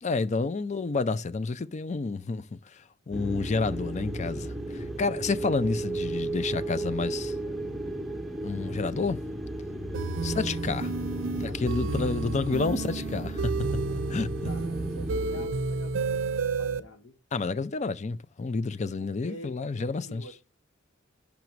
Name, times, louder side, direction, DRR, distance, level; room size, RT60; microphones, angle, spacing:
voice 1, 0.0-7.3 8.4-9.2 10.2-10.9 11.4-13.5 14.1-14.3 17.3-20.2, left 4 dB, 35° left, 0.5 m, -30 dB
sound 1, 3.1-15.5, right 1 dB, ahead, 0.7 m, -35 dB
voice 2, 6.4-7.9 10.2-10.6 11.4-11.8 12.6-12.8 14.4-17.2 19.0-20.5, left 1 dB, 75° left, 1.0 m, -48 dB
sound 2, 9.9-16.8, right 4 dB, 70° right, 0.6 m, -31 dB
5.9 x 5.2 x 4.6 m
head